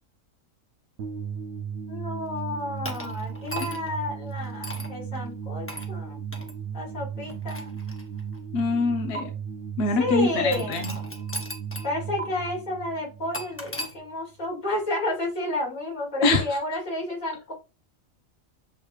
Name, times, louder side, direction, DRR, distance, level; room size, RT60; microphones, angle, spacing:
sound 1, 1.0-14.1, right 7 dB, 65° right, 0.8 m, -36 dB
voice 1, 1.9-6.2 6.7-7.8 10.0-10.9 11.8-17.5, left 2 dB, 85° left, -4 dB, 3.2 m, -31 dB
sound 2, 2.8-4.0 4.6-4.9 5.7-5.9 6.3-6.5 7.2-8.4 9.1-9.2 10.5-11.9 12.2-12.3 13.3-13.9, right 1 dB, 15° left, 0.6 m, -36 dB
voice 2, 8.5-9.3 9.8-10.9 16.2-16.4, left 3 dB, 55° left, 4 dB, 1.0 m, -24 dB
7.1 x 3.1 x 2.3 m, 0.29 s
omnidirectional pair, 1.4 m